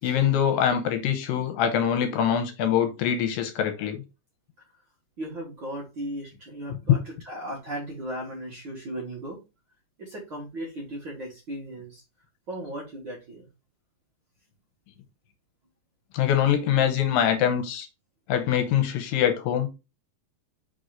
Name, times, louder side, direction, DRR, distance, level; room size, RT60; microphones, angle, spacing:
voice 1, 0.0-4.0 6.9-7.0 16.1-17.9 18.3-19.7, left 9 dB, 80° left, 2.5 m, -23 dB
voice 2, 5.2-9.4 10.0-12.0 12.5-13.5, right 1 dB, 45° right, 1.7 m, -36 dB
5.4 x 4.0 x 4.7 m
omnidirectional pair, 4.3 m